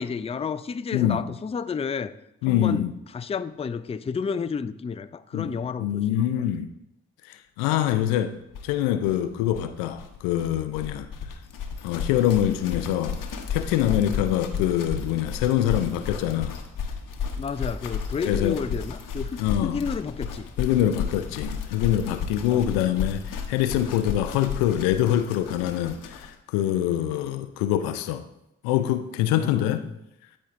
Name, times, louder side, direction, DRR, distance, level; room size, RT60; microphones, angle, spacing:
voice 1, 0.0-2.1 2.5-2.8 3.1-6.2 14.1-14.2 17.4-20.5 22.5-22.6 29.3-29.8, left 6 dB, 20° left, 0.4 m, -31 dB
voice 2, 0.9-1.2 2.4-2.9 5.3-6.7 7.2-8.3 8.6-11.1 11.8-13.2 13.5-16.5 18.3-18.6 19.4-19.8 20.6-28.3 28.6-29.8, left 11 dB, 85° left, 0.5 m, -25 dB
sound 1, 7.9-8.0 8.2-8.3 8.5-26.4, left 6 dB, 65° left, 1.0 m, -33 dB
12.0 x 4.3 x 2.5 m
hypercardioid pair, 40°, 35 cm